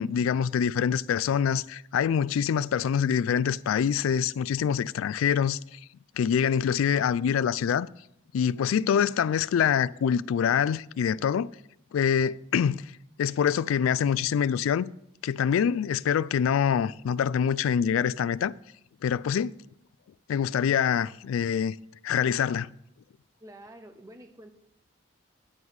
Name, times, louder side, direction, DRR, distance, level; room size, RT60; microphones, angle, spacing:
voice 1, 0.0-5.8 6.2-7.9 8.3-11.5 11.9-12.8 13.2-14.9 15.2-18.5 19.0-19.6 20.3-21.8 22.0-22.7, left 8 dB, 85° left, 0.3 m, -25 dB
voice 2, 23.4-24.5, right 1 dB, 15° right, 0.7 m, -48 dB
9.7 x 4.7 x 7.2 m
head